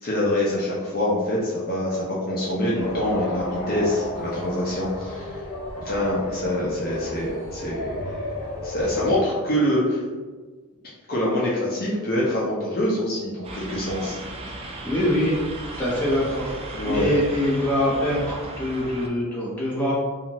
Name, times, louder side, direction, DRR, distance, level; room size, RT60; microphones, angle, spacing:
voice 1, 0.0-5.5 5.8-8.2 8.6-10.0 11.1-14.2 14.5-14.9 16.7-17.2, left 1 dB, 45° left, -6 dB, 0.6 m, -25 dB
sound 1, 2.8-9.2, left 1 dB, 85° left, 0.7 m, -32 dB
sound 2, 13.4-19.1, right 2 dB, 25° right, 0.3 m, -36 dB
voice 2, 14.8-15.4 15.8-16.5 16.8-19.9, equal, 10° left, -9 dB, 1.0 m, -24 dB
2.5 x 2.5 x 2.9 m, 1.4 s
head